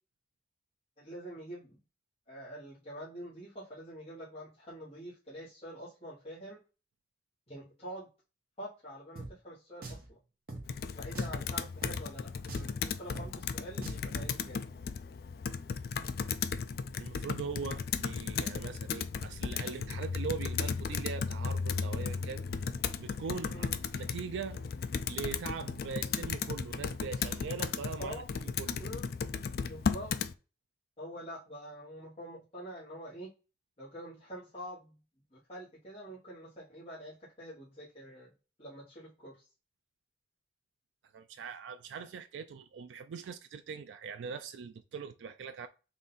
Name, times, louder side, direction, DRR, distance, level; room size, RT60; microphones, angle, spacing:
voice 1, 1.0-1.8 2.3-6.6 7.5-8.1 8.6-10.2 10.9-14.6 23.5-23.7 28.0-28.3 28.8-29.0 29.6-30.1 31.0-33.3 33.8-35.0 35.3-38.3 38.6-39.3, equal, 35° left, 1.4 m, -46 dB
Drum, 9.2-9.3 9.8-10.1 10.5-10.6 11.1-11.4 11.8-12.0 12.5-12.7 13.2-13.3 13.8-14.3, right 2 dB, 55° right, 1.0 m, -42 dB
Computer keyboard, 10.7-30.3, left 6 dB, 55° left, 0.3 m, -35 dB
voice 2, 17.0-22.5 23.0-23.7 23.9-24.6 25.1-28.9 41.1-45.7, right 6 dB, 90° right, 0.3 m, -41 dB
3.7 x 2.7 x 4.0 m
head